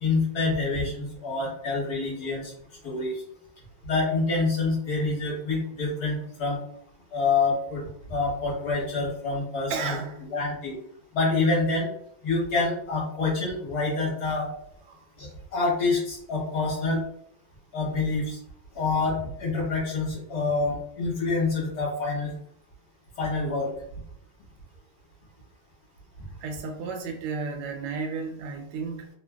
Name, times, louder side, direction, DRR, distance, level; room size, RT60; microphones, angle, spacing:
voice 1, 0.0-2.5 2.8-3.2 3.8-6.6 7.1-7.8 8.1-10.0 10.3-10.7 11.1-11.9 12.2-14.5 15.2-17.0 17.7-18.4 18.7-22.3 23.2-23.7, left 3 dB, 55° left, -4 dB, 1.3 m, -27 dB
voice 2, 9.7-10.3 14.9-15.1 26.4-29.1, right 4 dB, 85° right, 4 dB, 1.5 m, -33 dB
3.3 x 2.4 x 2.2 m, 0.66 s
omnidirectional pair, 2.3 m